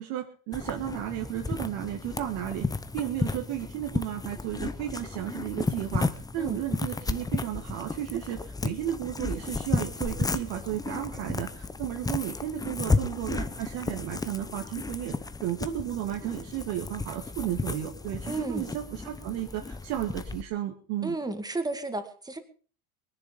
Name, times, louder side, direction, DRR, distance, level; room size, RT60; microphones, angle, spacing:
voice 1, 0.0-2.7 2.9-15.2 15.4-21.1, right 12 dB, 70° right, 2 dB, 2.1 m, -33 dB
sound 1, 0.5-20.4, left 3 dB, 10° left, 0.7 m, -33 dB
voice 2, 18.3-18.7 21.0-22.4, right 2 dB, 10° right, 8 dB, 2.1 m, -33 dB
20.0 x 10.5 x 5.4 m, 0.41 s
supercardioid pair, 120°, 44 cm